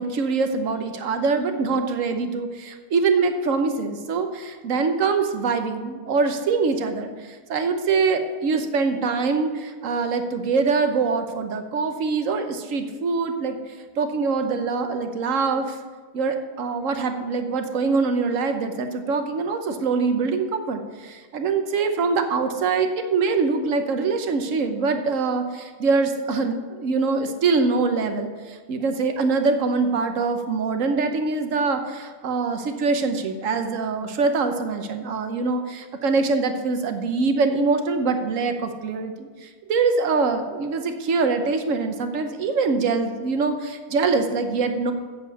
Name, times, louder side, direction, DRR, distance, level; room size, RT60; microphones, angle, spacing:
voice 1, 0.0-13.6 14.0-15.8 16.1-44.9, right 4 dB, 65° right, 6 dB, 1.3 m, -24 dB
7.8 x 7.8 x 6.9 m, 1.4 s
omnidirectional pair, 1.5 m